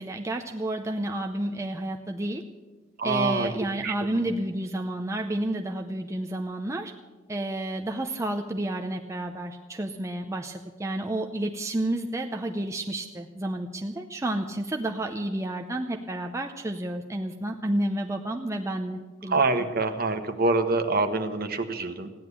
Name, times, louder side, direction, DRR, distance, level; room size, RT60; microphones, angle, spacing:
voice 1, 0.0-2.4 3.0-6.9 7.3-19.4, right 1 dB, 15° right, 3 dB, 0.6 m, -30 dB
voice 2, 3.0-3.5 3.8-3.9 19.3-22.1, right 3 dB, 45° right, 7 dB, 1.2 m, -25 dB
15.5 x 10.5 x 8.3 m, 1.3 s
head